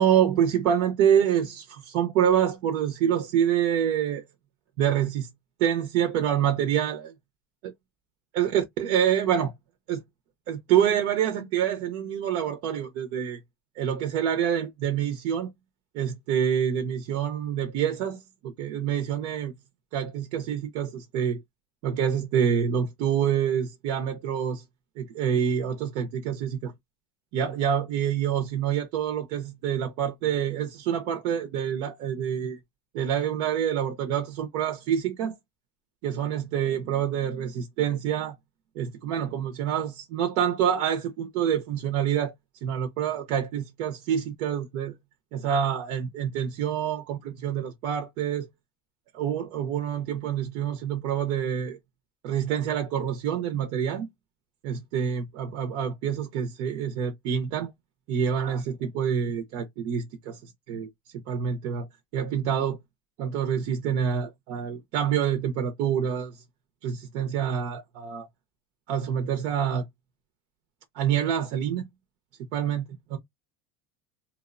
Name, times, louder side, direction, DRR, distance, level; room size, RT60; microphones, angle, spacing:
voice 1, 0.0-4.2 4.8-5.3 5.6-7.1 7.6-7.7 8.4-9.5 9.9-10.0 10.5-13.4 13.8-15.5 15.9-19.5 19.9-21.4 21.8-24.6 25.0-26.7 27.3-32.6 32.9-35.4 36.0-38.4 38.8-42.3 42.6-44.9 45.3-48.5 49.1-51.8 52.2-54.1 54.6-57.7 58.1-60.4 60.7-60.9 61.3-61.9 62.1-62.8 63.2-66.4 66.8-68.3 68.9-69.8 71.0-71.9 72.5-73.2, right 9 dB, 45° right, 0.5 m, -26 dB
2.8 x 2.0 x 2.4 m
supercardioid pair, 170°, 14 cm